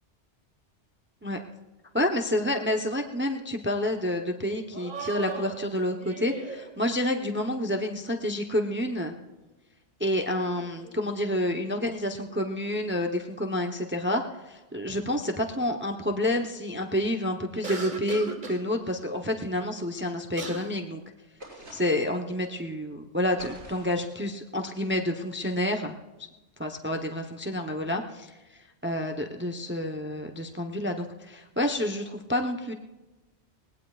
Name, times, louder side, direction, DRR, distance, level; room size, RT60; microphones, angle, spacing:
voice 1, 1.9-9.1 10.0-21.0 21.7-25.9 26.6-28.3 28.8-32.7, left 1 dB, 10° right, 3 dB, 0.8 m, -29 dB
sound 1, 3.2-3.4 3.7-3.8 4.7-6.7 10.2-11.9 12.3-13.1 14.9-15.3 17.6-18.6 20.0-20.1 20.4-20.7, right 4 dB, 45° right, 1.5 m, -39 dB
sound 2, 21.4-22.2 23.4-24.1, right 1 dB, 80° right, 7.3 m, -46 dB
20.5 x 19.0 x 2.5 m, 1.1 s
omnidirectional pair, 1.2 m